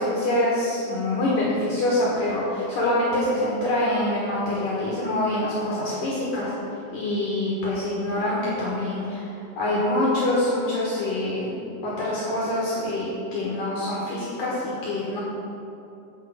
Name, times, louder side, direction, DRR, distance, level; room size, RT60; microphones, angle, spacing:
voice 1, 0.0-6.5 6.9-15.2, left 1 dB, 65° left, -6 dB, 2.3 m, -25 dB
9.0 x 6.4 x 7.0 m, 2.8 s
omnidirectional pair, 5.7 m